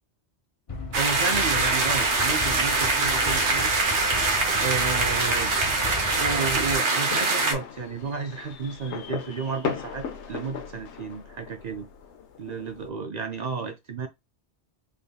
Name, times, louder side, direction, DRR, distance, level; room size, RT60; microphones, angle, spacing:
sound 1, 0.7-6.8, left 3 dB, 40° left, 0.6 m, -36 dB
sound 2, 0.9-7.5, right 3 dB, 85° right, 1.2 m, -23 dB
voice 1, 1.0-3.7 4.6-5.5 6.1-11.9 12.4-14.1, right 5 dB, 55° right, 0.5 m, -32 dB
sound 3, 7.0-12.9, left 7 dB, 90° left, 1.0 m, -37 dB
3.5 x 3.4 x 2.3 m
omnidirectional pair, 1.1 m